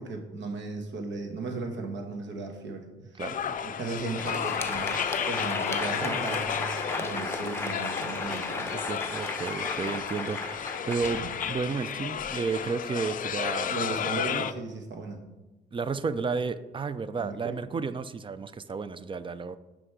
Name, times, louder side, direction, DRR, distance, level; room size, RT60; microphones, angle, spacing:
voice 1, 0.0-3.2 3.6-8.8 13.7-15.2 17.1-17.5, right 3 dB, 65° right, 4 dB, 1.3 m, -36 dB
sound 1, 3.2-14.5, left 8 dB, 45° left, 0.4 m, -33 dB
voice 2, 3.2-3.6 5.8-6.0 8.8-14.4 15.7-19.6, right 5 dB, 25° right, 14 dB, 0.4 m, -32 dB
Crowd, 4.0-12.4, left 2 dB, 10° left, 0.7 m, -35 dB
6.3 x 5.1 x 4.6 m, 1.1 s
cardioid pair, 90°, 20 cm